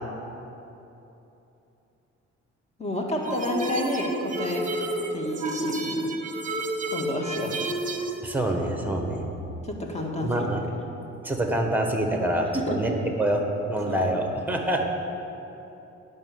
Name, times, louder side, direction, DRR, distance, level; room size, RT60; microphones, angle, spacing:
voice 1, 2.8-4.7 5.1-6.1 6.9-7.6 9.6-10.5 12.5-12.9 13.9-14.1, left 1 dB, 20° left, 0 dB, 1.9 m, -30 dB
sound 1, 3.3-8.2, right 1 dB, 25° right, 1.3 m, -30 dB
voice 2, 8.2-9.2 10.2-10.6 11.2-12.9 13.2-13.4 13.7-14.8, right 1 dB, 5° right, 3 dB, 1.5 m, -26 dB
10.5 x 6.5 x 7.8 m, 3.0 s
cardioid pair, 90°, 30 cm